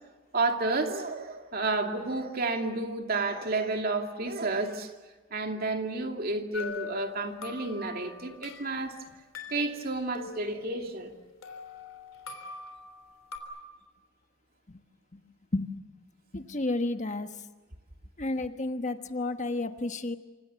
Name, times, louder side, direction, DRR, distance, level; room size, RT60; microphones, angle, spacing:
voice 1, 0.3-4.9 5.3-8.9 9.5-11.1, right 3 dB, 45° right, 4 dB, 2.5 m, -31 dB
sound 1, 6.5-8.8 9.3-11.1 11.4-13.4, left 4 dB, 70° left, 3.5 m, -42 dB
voice 2, 16.3-17.3 18.2-20.2, left 2 dB, 35° left, 8 dB, 1.3 m, -31 dB
27.0 x 26.5 x 7.1 m, 1.2 s
head